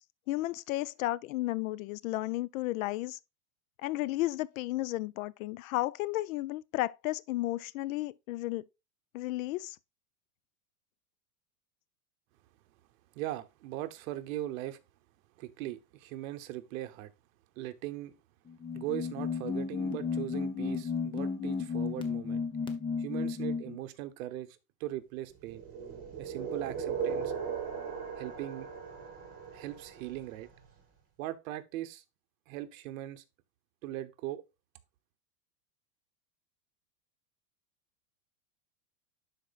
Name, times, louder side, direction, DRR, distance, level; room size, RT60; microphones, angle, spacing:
voice 1, 0.3-3.2 3.8-8.7 9.1-9.8, left 17 dB, 60° left, 0.5 m, -33 dB
voice 2, 13.1-14.8 15.4-17.1 17.6-18.1 18.7-22.4 23.0-25.6 26.2-27.3 28.2-28.7 29.5-30.5 31.2-32.0 32.5-33.2 33.8-34.4, right 14 dB, 60° right, 1.0 m, -39 dB
sound 1, 18.5-23.8, left 5 dB, 10° left, 0.6 m, -33 dB
sound 2, 25.5-30.4, right 6 dB, 30° right, 3.0 m, -38 dB
11.5 x 4.4 x 2.4 m
supercardioid pair, 140°, 46 cm